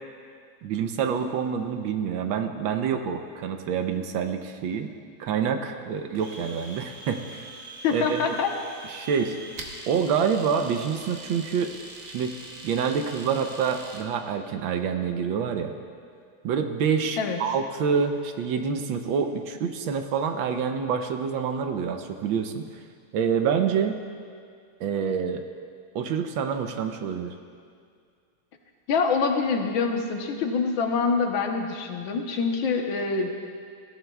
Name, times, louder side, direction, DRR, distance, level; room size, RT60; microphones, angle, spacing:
voice 1, 0.6-4.9 5.2-7.5 7.9-8.4 8.9-9.4 9.9-11.7 12.1-12.4 12.6-15.7 16.4-22.6 23.1-23.9 24.8-25.4 25.9-27.3, right 6 dB, 75° right, 6 dB, 1.4 m, -27 dB
Domestic sounds home sounds, 6.1-14.1, right 2 dB, 45° right, 1.0 m, -43 dB
voice 2, 7.8-8.5 17.2-17.4 28.9-33.3, left 5 dB, 70° left, 3 dB, 1.6 m, -25 dB
20.5 x 14.5 x 2.3 m, 2.2 s
omnidirectional pair, 2.3 m